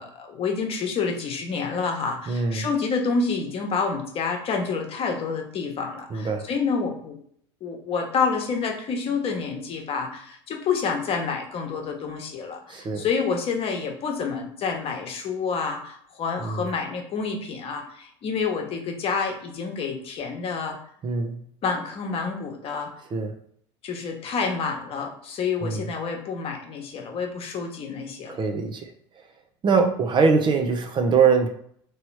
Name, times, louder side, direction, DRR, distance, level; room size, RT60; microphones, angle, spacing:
voice 1, 0.0-7.2 7.6-20.8 21.6-23.0 23.8-28.4, left 5 dB, 45° left, 2 dB, 1.1 m, -28 dB
voice 2, 2.3-2.7 6.1-6.5 12.7-13.1 16.4-16.7 21.0-21.4 23.1-23.3 25.6-25.9 28.3-28.9 29.2-29.3 29.6-31.5, right 5 dB, 35° right, 6 dB, 0.7 m, -23 dB
3.1 x 3.0 x 4.6 m, 0.64 s
hypercardioid pair, 85°, 14 cm